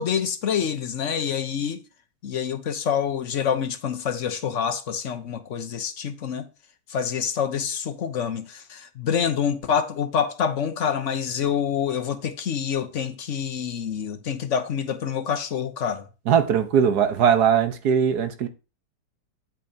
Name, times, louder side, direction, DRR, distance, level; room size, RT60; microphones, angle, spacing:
voice 1, 0.0-1.8 2.2-6.5 6.9-16.1, left 7 dB, 55° left, 1.1 m, -27 dB
voice 2, 16.3-18.5, right 8 dB, 70° right, 1.6 m, -20 dB
10.0 x 8.3 x 2.8 m
omnidirectional pair, 1.8 m